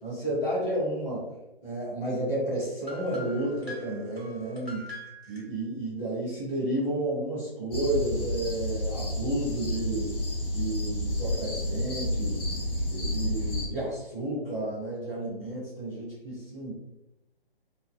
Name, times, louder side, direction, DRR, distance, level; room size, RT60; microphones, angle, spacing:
voice 1, 0.0-1.2 1.6-4.9 5.3-10.2 10.5-12.4 12.9-16.7, right 1 dB, 5° left, -14 dB, 0.5 m, -31 dB
sound 1, 2.8-5.4, left 1 dB, 90° left, 1.3 m, -44 dB
sound 2, 7.7-13.7, left 1 dB, 65° left, 1.0 m, -30 dB
3.1 x 2.1 x 2.7 m, 0.96 s
figure-of-eight pair, 140°, 30 cm